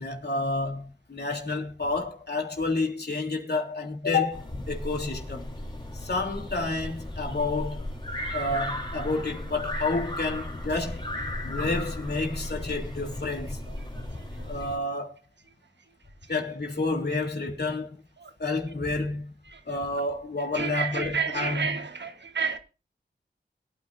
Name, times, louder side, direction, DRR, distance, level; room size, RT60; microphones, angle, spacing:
voice 1, 0.0-5.5 5.9-7.9 8.3-11.0 11.4-13.6 14.5-15.2 16.3-18.0 18.4-19.3 19.7-21.9, left 3 dB, 60° left, 3.3 m, -30 dB
sound 1, 4.3-14.8, left 1 dB, 25° left, 3.7 m, -35 dB
voice 2, 20.6-22.6, right 6 dB, 70° right, 1.4 m, -29 dB
22.5 x 9.5 x 2.7 m
cardioid pair, 45°, 19 cm